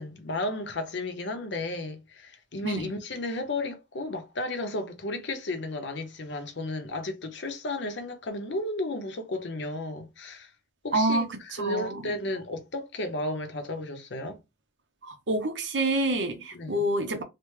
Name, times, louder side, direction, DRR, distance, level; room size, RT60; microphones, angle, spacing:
voice 1, 0.0-10.5 10.8-14.4 16.5-16.9, left 2 dB, 65° left, 0.8 m, -33 dB
voice 2, 10.9-12.1 15.0-17.2, right 1 dB, 70° right, 0.8 m, -28 dB
3.3 x 2.2 x 3.1 m
head